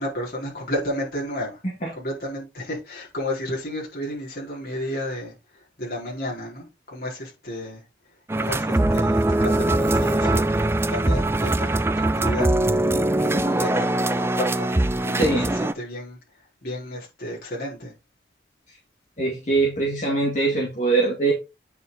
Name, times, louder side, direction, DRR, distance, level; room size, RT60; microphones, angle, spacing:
voice 1, 0.0-1.6 1.9-5.3 5.8-7.8 8.3-12.5 13.2-16.2 16.6-17.9, left 1 dB, 55° left, 4.3 m, -32 dB
sound 1, 8.3-15.7, right 1 dB, 15° right, 0.4 m, -22 dB
voice 2, 15.2-15.5 19.2-21.3, right 3 dB, 40° left, 1.8 m, -22 dB
9.2 x 4.8 x 3.9 m
head